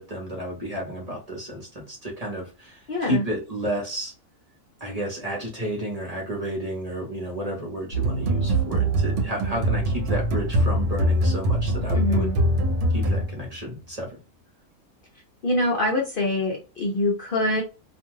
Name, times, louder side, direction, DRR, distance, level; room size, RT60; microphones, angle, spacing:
voice 1, 0.0-4.1 4.8-12.3 12.9-14.2, right 1 dB, 35° right, -1 dB, 0.8 m, -32 dB
voice 2, 2.9-3.2 11.9-12.4 15.4-17.6, left 1 dB, 50° left, -1 dB, 0.7 m, -24 dB
sound 1, 7.9-13.6, right 1 dB, 65° right, 0.9 m, -23 dB
2.5 x 2.3 x 3.0 m, 0.30 s
omnidirectional pair, 1.4 m